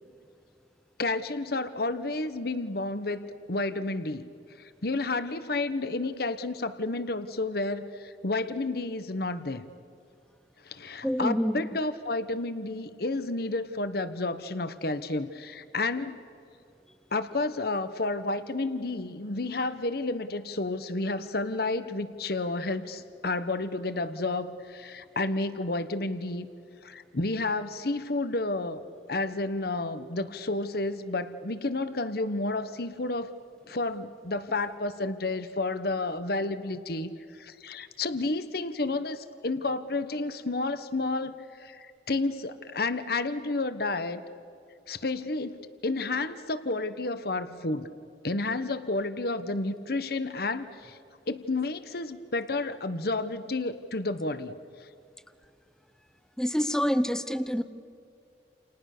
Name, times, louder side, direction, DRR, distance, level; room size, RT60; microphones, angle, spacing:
voice 1, 1.0-4.3 4.6-9.7 10.6-16.2 17.1-26.5 26.8-28.8 29.1-33.3 33.7-44.2 44.9-47.9 48.2-51.0 51.3-54.5, left 2 dB, 60° left, 11 dB, 1.3 m, -31 dB
voice 2, 11.0-11.6 56.4-57.6, equal, 5° left, 11 dB, 0.8 m, -27 dB
29.5 x 29.5 x 6.8 m, 2.5 s
head